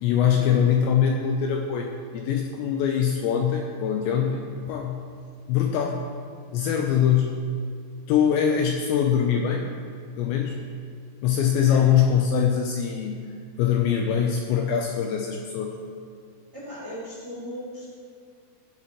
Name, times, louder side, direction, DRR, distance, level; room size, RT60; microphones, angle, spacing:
voice 1, 0.0-5.0 5.5-6.0 6.5-7.5 8.1-9.7 10.2-10.7 11.2-13.2 13.6-15.8, left 8 dB, 90° left, 2 dB, 2.6 m, -23 dB
voice 2, 16.5-17.9, equal, 40° right, -7 dB, 1.5 m, -38 dB
15.0 x 11.0 x 3.1 m, 2.3 s
omnidirectional pair, 5.8 m